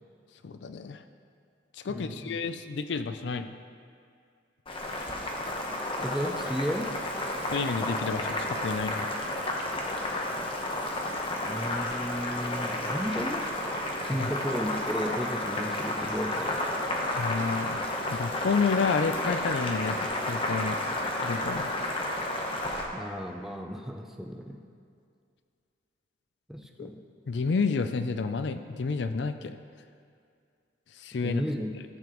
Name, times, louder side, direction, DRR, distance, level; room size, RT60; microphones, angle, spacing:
voice 1, 0.4-1.0 1.7-3.6 7.5-9.1 14.1-14.3 17.1-20.8 21.2-21.7 26.8-26.9 27.3-29.6 30.9-31.4, left 4 dB, 70° left, 10 dB, 0.4 m, -30 dB
voice 2, 1.9-2.4 6.0-7.0 11.5-13.6 14.0-16.8 22.9-24.7 26.5-27.0 31.2-31.8, equal, ahead, 3 dB, 0.4 m, -34 dB
Boiling, 4.7-22.9, left 1 dB, 30° left, 0.9 m, -31 dB
13.5 x 7.1 x 3.0 m, 2.3 s
head